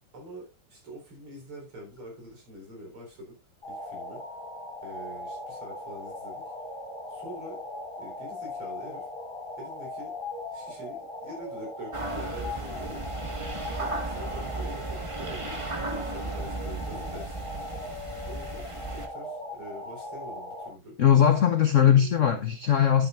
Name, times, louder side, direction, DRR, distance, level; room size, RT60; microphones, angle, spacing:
voice 1, 0.1-3.3 3.7-4.2 4.8-6.4 7.1-7.6 8.0-9.1 9.6-10.1 10.5-13.0 13.7-17.3 18.1-21.0 21.8-22.2, equal, 75° right, 4.8 m, -45 dB
sound 1, 3.6-20.7, left 2 dB, 25° left, 4.9 m, -39 dB
sound 2, 11.9-19.1, right 2 dB, 20° right, 0.9 m, -35 dB
voice 2, 21.0-23.1, left 9 dB, 70° left, 0.7 m, -20 dB
11.0 x 8.7 x 2.5 m
omnidirectional pair, 2.4 m